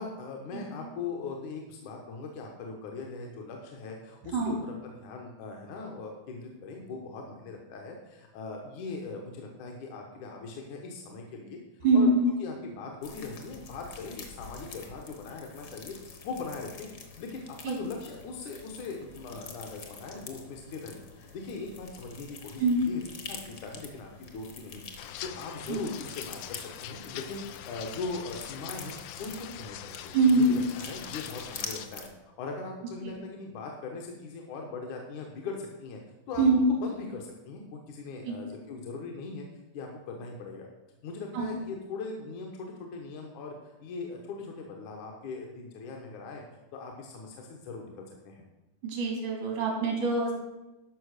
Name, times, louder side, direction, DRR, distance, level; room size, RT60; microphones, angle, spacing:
voice 1, 0.0-12.1 12.4-16.0 16.2-16.9 17.2-24.8 25.2-29.9 30.4-30.5 30.7-32.1 32.4-36.0 36.3-39.5 39.7-40.7 41.0-46.4 46.7-48.4, left 4 dB, 75° left, 1 dB, 2.6 m, -40 dB
voice 2, 0.5-0.9 4.3-4.6 11.8-12.3 17.6-17.8 22.6-22.9 25.7-25.8 30.1-30.7 33.0-33.2 36.4-36.6 38.2-38.3 41.3-41.6 48.8-50.3, right 2 dB, 90° right, -1 dB, 4.2 m, -25 dB
sound 1, 13.0-32.1, left 5 dB, 50° left, 1.2 m, -46 dB
sound 2, 25.0-31.9, left 12 dB, 90° left, 2.2 m, -43 dB
12.5 x 5.7 x 6.4 m, 1.0 s
omnidirectional pair, 3.5 m